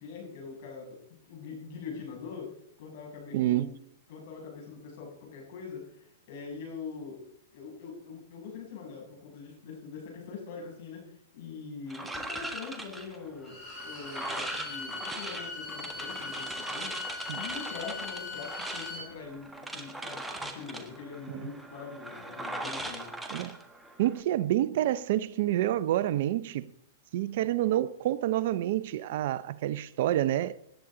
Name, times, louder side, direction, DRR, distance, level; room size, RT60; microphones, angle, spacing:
voice 1, 0.0-3.7 4.1-7.2 7.5-13.6 13.8-23.2, left 5 dB, 60° left, 7.1 m, -43 dB
voice 2, 3.3-3.7 17.3-17.4 21.3-21.4 23.3-23.6 24.0-26.7 27.1-30.5, right 13 dB, 60° right, 0.6 m, -28 dB
sound 1, 11.9-24.2, right 2 dB, 5° right, 1.5 m, -40 dB
Bowed string instrument, 13.4-19.1, left 3 dB, 20° left, 6.0 m, -40 dB
18.0 x 10.0 x 3.9 m
hypercardioid pair, 135°, 0 cm